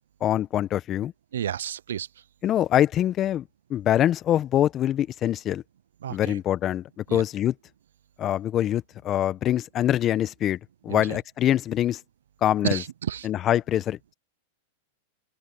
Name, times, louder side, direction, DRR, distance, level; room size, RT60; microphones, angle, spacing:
voice 1, 0.2-1.1 2.4-3.4 3.7-5.6 6.1-7.5 8.2-10.6 10.8-12.0 12.4-12.8 13.2-14.1, left 11 dB, 35° left, 1.2 m, -24 dB
voice 2, 1.3-2.1 6.0-6.4 7.1-7.2 10.9-11.2 12.6-13.3, right 10 dB, 80° right, 0.6 m, -31 dB
open air
hypercardioid pair, 110°, 0 cm